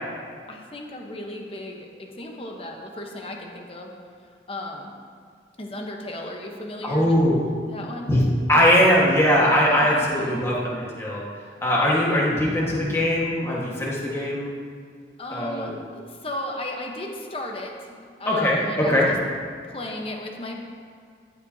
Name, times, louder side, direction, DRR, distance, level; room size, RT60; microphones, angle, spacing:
voice 1, 0.5-3.9 4.5-4.9 5.6-7.2 7.7-8.1 9.8-10.0 15.2-19.0 19.6-20.6, left 1 dB, 30° left, 1 dB, 1.0 m, -35 dB
voice 2, 6.8-7.4 8.1-8.2 8.5-11.2 11.6-14.6 15.3-15.7 18.3-19.1, equal, 15° left, -5 dB, 1.6 m, -21 dB
13.5 x 8.6 x 2.8 m, 2.1 s
head